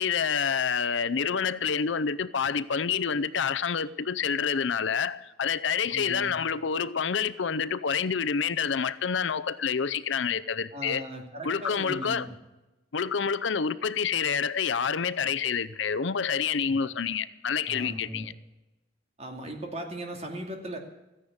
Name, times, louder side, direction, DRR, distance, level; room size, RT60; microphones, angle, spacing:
voice 1, 0.0-11.0 11.4-12.3 12.9-18.3, left 6 dB, 70° left, 0.6 m, -28 dB
voice 2, 5.8-6.3 10.7-12.4 16.7-16.9 17.7-18.3 19.2-20.8, right 1 dB, 35° right, 2.5 m, -38 dB
15.0 x 10.0 x 8.7 m
head